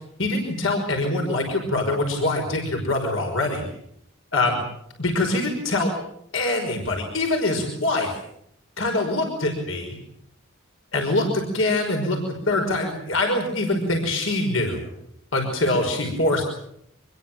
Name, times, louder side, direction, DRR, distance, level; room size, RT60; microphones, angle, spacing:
voice 1, 0.2-3.7 4.3-4.5 5.0-5.9 6.3-8.1 8.8-10.0 10.9-12.2 12.5-14.9 15.3-16.4, left 2 dB, 75° left, 3 dB, 5.4 m, -24 dB
26.0 x 21.5 x 7.6 m, 0.73 s
head